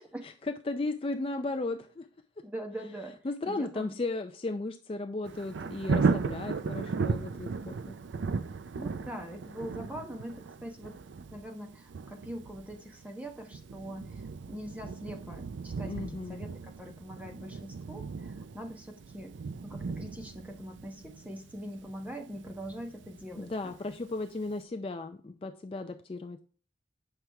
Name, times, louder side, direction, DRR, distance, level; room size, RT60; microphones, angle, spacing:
voice 1, 0.7-2.1 3.2-8.0 15.8-16.4 23.4-26.4, left 2 dB, 30° left, 6 dB, 0.4 m, -35 dB
voice 2, 2.4-3.2 3.5-3.9 8.8-11.0 11.3-19.3 19.6-23.7, right 1 dB, 10° right, 3 dB, 0.9 m, -43 dB
Thunder, 5.2-24.0 24.5-24.6, right 4 dB, 80° right, 0.4 m, -36 dB
7.8 x 6.0 x 3.3 m, 0.39 s
head